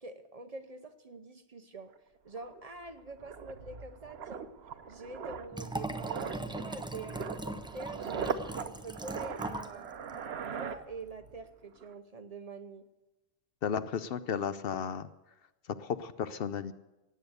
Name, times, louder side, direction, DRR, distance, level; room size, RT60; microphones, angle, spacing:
voice 1, 0.0-1.9 2.2-4.5 4.8-7.3 7.7-10.0 10.5-12.9, right 3 dB, 40° right, 9 dB, 0.8 m, -45 dB
sound 1, 2.0-2.1 2.3-11.4 11.7-11.9, right 6 dB, 75° right, 1.1 m, -40 dB
Liquid, 5.5-9.8 10.1-10.2, right 1 dB, 5° right, 0.5 m, -40 dB
voice 2, 13.6-15.1 15.8-16.7, left 7 dB, 65° left, 13 dB, 0.8 m, -34 dB
17.5 x 8.7 x 8.0 m, 1.0 s
omnidirectional pair, 1.1 m